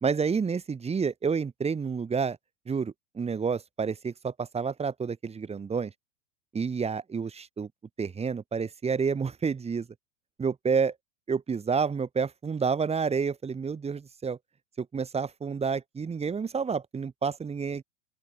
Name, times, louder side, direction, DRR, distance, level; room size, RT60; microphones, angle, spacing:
voice 1, 0.0-2.4 2.7-5.9 6.5-7.7 8.0-9.9 10.4-11.0 11.3-14.4 14.8-17.8, right 5 dB, 15° right, 1.9 m, -29 dB
open air
hypercardioid pair, 95°, 37 cm